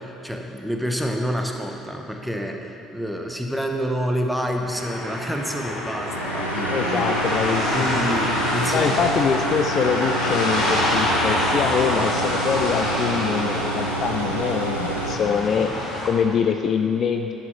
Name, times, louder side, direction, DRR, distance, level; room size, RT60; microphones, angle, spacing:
voice 1, 0.0-7.1 7.7-9.0, equal, 5° right, 2 dB, 1.1 m, -28 dB
sound 1, 4.7-16.1, left 1 dB, 75° left, 2.1 m, -26 dB
sound 2, 6.0-15.2, right 2 dB, 90° right, 0.5 m, -29 dB
voice 2, 6.7-7.9 8.7-17.3, left 6 dB, 50° left, 6 dB, 0.4 m, -24 dB
10.5 x 8.7 x 3.3 m, 2.7 s
figure-of-eight pair, 50°, 0 cm